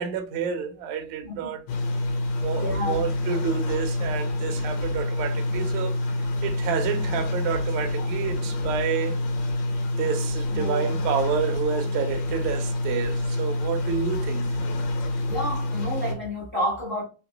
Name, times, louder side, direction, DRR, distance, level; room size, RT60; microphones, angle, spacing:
voice 1, 0.0-1.6 2.4-6.0 6.4-9.2 10.0-14.5, right 8 dB, 80° right, 1.6 m, -29 dB
voice 2, 1.2-1.5 2.5-3.0 10.5-11.0 15.2-17.0, equal, 55° left, 0.6 m, -30 dB
sound 1, 1.7-16.1, left 1 dB, 70° left, 2.5 m, -27 dB
5.6 x 2.1 x 2.9 m
omnidirectional pair, 4.2 m